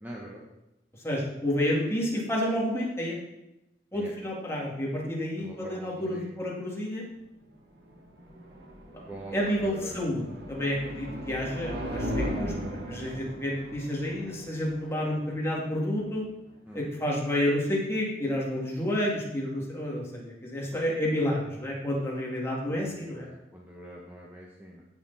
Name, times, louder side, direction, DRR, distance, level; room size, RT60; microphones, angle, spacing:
voice 1, 0.0-0.4 3.9-4.1 5.4-6.3 9.1-9.3 9.6-9.9 16.7-16.8 20.7-20.8 22.7-24.8, right 1 dB, 10° right, -3 dB, 1.3 m, -43 dB
voice 2, 1.0-3.2 3.9-7.0 9.3-16.2 16.7-23.3, left 1 dB, 15° left, -4 dB, 2.6 m, -30 dB
sound 1, 7.5-16.5, equal, 60° right, 2.4 m, -38 dB
16.5 x 6.9 x 4.3 m, 0.92 s
head